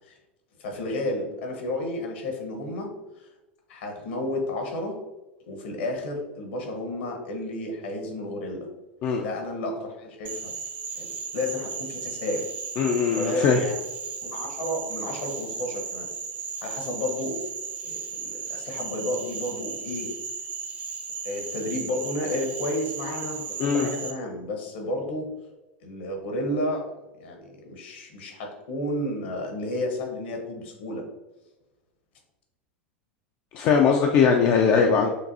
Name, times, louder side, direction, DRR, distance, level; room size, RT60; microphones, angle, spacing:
voice 1, 0.6-2.9 3.7-5.0 5.5-8.7 9.2-10.5 11.0-12.5 13.1-13.7 14.2-16.1 16.6-17.4 17.8-20.1 21.2-25.3 25.8-26.9 27.2-31.1, left 1 dB, 65° left, 2 dB, 1.1 m, -31 dB
Frog, 10.2-24.1, right 5 dB, 30° right, 0.6 m, -35 dB
voice 2, 12.8-13.6 23.6-23.9 33.5-35.1, left 6 dB, 45° left, 2 dB, 0.4 m, -20 dB
6.4 x 2.6 x 2.7 m, 1.1 s
figure-of-eight pair, 85°, 6 cm